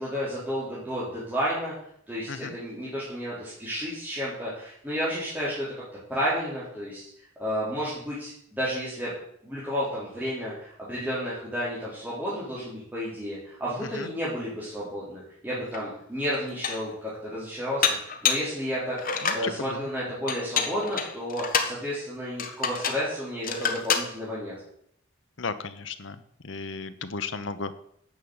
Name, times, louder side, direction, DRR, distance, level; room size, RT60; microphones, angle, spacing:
voice 1, 0.0-1.7 2.1-5.7 6.1-7.0 7.4-9.1 9.4-19.0 19.3-24.5, equal, 10° right, -9 dB, 3.7 m, -31 dB
Dishes pots and pans, 15.7-15.8 16.3-16.9 17.8-18.5 19.0-19.5 20.3-21.8 22.4-23.1 23.4-24.1, left 6 dB, 45° left, 1.3 m, -27 dB
voice 2, 19.2-19.8 25.4-26.2 26.4-27.7, left 4 dB, 65° left, 11 dB, 1.0 m, -34 dB
10.0 x 7.1 x 7.9 m, 0.69 s
head